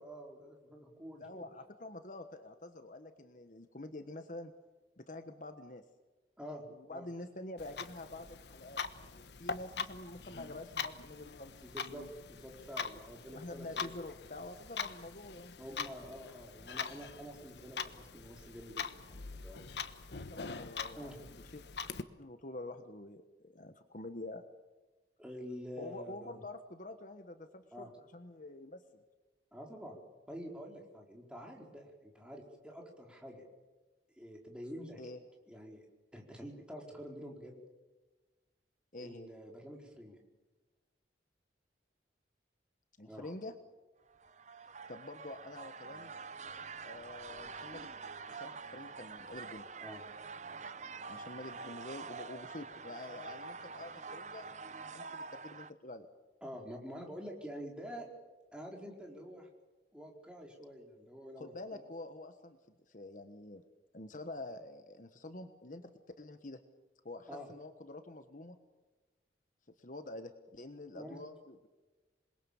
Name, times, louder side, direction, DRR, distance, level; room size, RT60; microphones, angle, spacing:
voice 1, 0.0-1.5 6.4-7.1 11.6-13.9 15.6-19.6 21.0-21.3 25.2-26.4 27.7-27.9 29.5-30.0 30.3-33.4 34.2-35.0 35.5-35.8 36.1-37.6 39.0-40.2 43.0-43.3 49.8-50.0 56.4-58.1 58.5-59.5 59.9-61.8 67.3-67.5 70.9-71.2, equal, 5° right, 0 dB, 4.4 m, -47 dB
voice 2, 1.2-4.5 5.0-5.8 6.7-8.8 9.1-11.6 13.3-15.5 20.1-21.6 22.2-24.4 25.8-29.0 35.0-35.2 38.9-39.3 43.0-43.5 44.9-46.1 46.8-47.9 48.3-49.7 51.1-54.5 54.8-56.1 61.4-62.6 62.9-63.6 63.9-65.9 66.2-66.6 67.0-68.6 69.8-71.7, left 2 dB, 45° left, 8 dB, 1.3 m, -47 dB
Clock, 7.6-22.0, left 5 dB, 65° left, 1.2 m, -43 dB
sound 1, 44.1-55.7, right 4 dB, 40° right, 0.8 m, -46 dB
27.5 x 21.5 x 7.2 m, 1.2 s
head